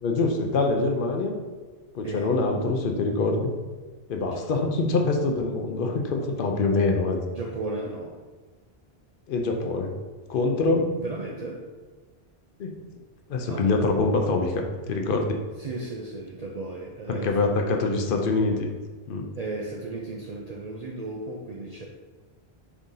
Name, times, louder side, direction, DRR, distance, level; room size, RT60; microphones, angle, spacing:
voice 1, 0.0-1.4 1.9-3.5 4.1-7.2 9.3-10.0 10.3-10.9 12.6-12.8 13.3-15.4 17.1-18.7 19.1-19.3, left 3 dB, 60° left, 3 dB, 0.7 m, -25 dB
voice 2, 7.3-8.2 11.0-11.6 13.5-13.7 15.6-17.5 19.4-21.8, right 2 dB, 55° right, -1 dB, 0.4 m, -35 dB
4.7 x 2.7 x 3.7 m, 1.3 s
omnidirectional pair, 1.1 m